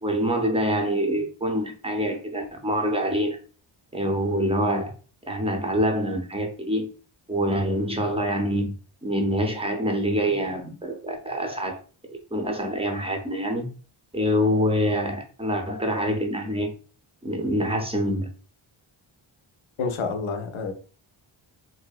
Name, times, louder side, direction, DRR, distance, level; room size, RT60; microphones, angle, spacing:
voice 1, 0.0-3.4 3.9-4.9 5.3-6.9 7.3-8.7 9.0-11.8 12.3-13.7 14.1-16.7 17.2-18.3, equal, 10° right, 0.5 m, -25 dB
voice 2, 19.8-20.7, left 4 dB, 70° left, 0.6 m, -28 dB
2.6 x 2.1 x 2.3 m
cardioid pair, 55°, 50 cm